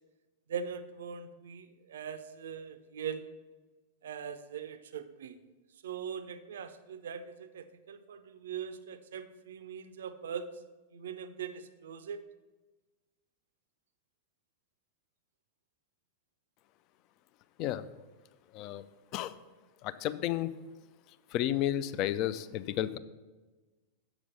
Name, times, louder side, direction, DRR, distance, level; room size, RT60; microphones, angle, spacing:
voice 1, 0.5-3.4 4.0-5.4 5.8-10.5 10.9-12.2, right 7 dB, 60° right, 11 dB, 0.5 m, -41 dB
voice 2, 19.8-20.5 21.3-23.0, left 12 dB, 40° left, 14 dB, 0.4 m, -32 dB
7.8 x 6.0 x 5.5 m, 1.2 s
figure-of-eight pair, 90°, 0 cm